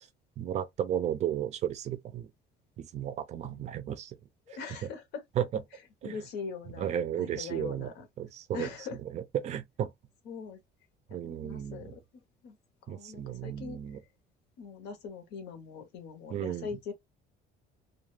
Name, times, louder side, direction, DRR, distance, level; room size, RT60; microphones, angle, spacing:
voice 1, 0.4-2.3 2.8-4.1 5.4-5.5 6.0-6.2 6.8-7.9 8.2-8.7 9.1-9.9 11.1-11.9 12.9-14.0 16.3-16.7, right 10 dB, 40° right, 0.4 m, -33 dB
voice 2, 4.5-5.2 6.0-8.1 8.5-9.0 10.2-10.6 11.1-12.0 12.4-12.6 12.9-14.0 14.6-16.9, left 5 dB, 70° left, 0.9 m, -42 dB
2.3 x 2.2 x 3.1 m
cardioid pair, 165°, 18 cm